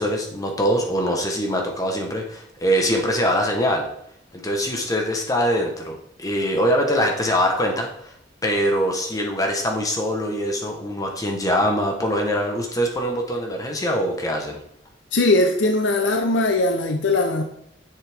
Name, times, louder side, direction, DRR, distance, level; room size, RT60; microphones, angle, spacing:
voice 1, 0.0-3.9 4.3-8.1 8.4-14.6, equal, 20° left, 2 dB, 1.1 m, -23 dB
voice 2, 15.1-17.4, left 2 dB, 70° left, 5 dB, 0.8 m, -20 dB
9.9 x 7.6 x 3.5 m, 0.74 s
head